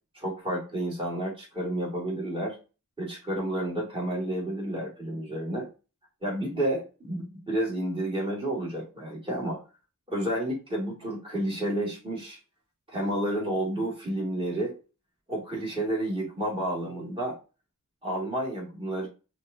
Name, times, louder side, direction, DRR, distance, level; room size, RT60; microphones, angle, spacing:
voice 1, 0.1-2.6 3.0-5.7 6.2-9.6 10.1-12.4 12.9-14.7 15.3-17.4 18.0-19.1, right 1 dB, 15° right, -5 dB, 2.4 m, -30 dB
5.7 x 2.5 x 2.8 m, 0.32 s
wide cardioid pair, 50°, 33 cm